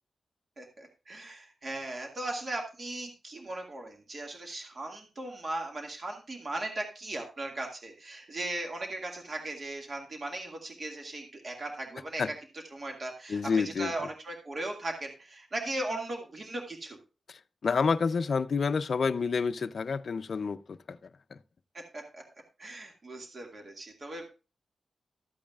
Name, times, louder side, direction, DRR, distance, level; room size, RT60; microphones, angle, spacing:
voice 1, 0.6-12.2 12.7-17.0 21.7-22.2 22.6-24.3, right 2 dB, 40° right, 2.0 m, -38 dB
voice 2, 13.3-13.9 17.3-21.4, left 5 dB, 55° left, 0.5 m, -29 dB
13.5 x 8.6 x 2.4 m
wide cardioid pair, 145°, 0 cm